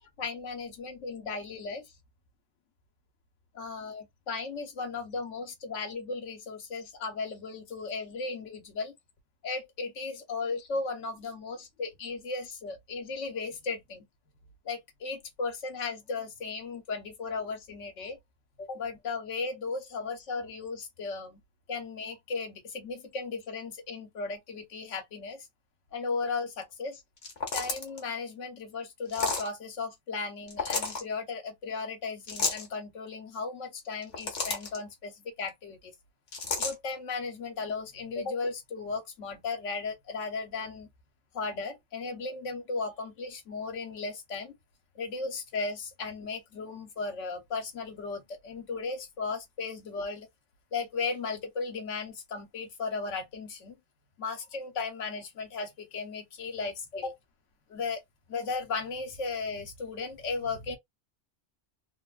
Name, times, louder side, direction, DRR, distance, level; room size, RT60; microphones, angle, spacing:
voice 1, 0.0-1.9 3.5-8.9 9.4-14.0 14.6-18.2 18.6-21.4 21.7-25.5 25.9-27.0 27.5-35.9 36.6-40.9 41.3-44.6 44.9-50.3 50.7-53.8 54.2-57.1 57.7-58.0 58.3-60.8, left 4 dB, 75° left, 1.2 m, -36 dB
sound 1, 27.2-28.0 29.1-29.5 30.5-31.0 32.3-32.7 33.9-34.8 36.3-36.7, left 4 dB, 60° left, 1.3 m, -31 dB
3.4 x 2.2 x 2.4 m
omnidirectional pair, 1.3 m